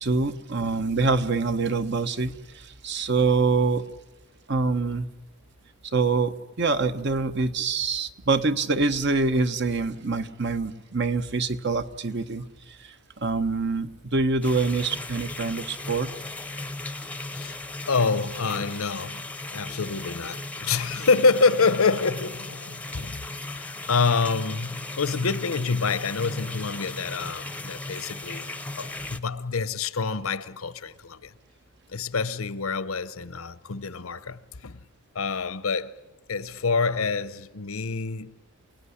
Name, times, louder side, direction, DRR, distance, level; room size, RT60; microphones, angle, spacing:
voice 1, 0.0-3.8 4.5-5.1 5.8-16.1, right 3 dB, 55° right, 1.1 m, -25 dB
sound 1, 14.4-29.2, left 2 dB, 5° left, 0.8 m, -37 dB
voice 2, 17.9-19.2 19.5-23.2 23.5-28.5 28.8-31.3 31.9-34.8 35.1-36.0 36.3-38.4, left 4 dB, 85° left, 0.9 m, -27 dB
27.5 x 18.5 x 10.0 m
head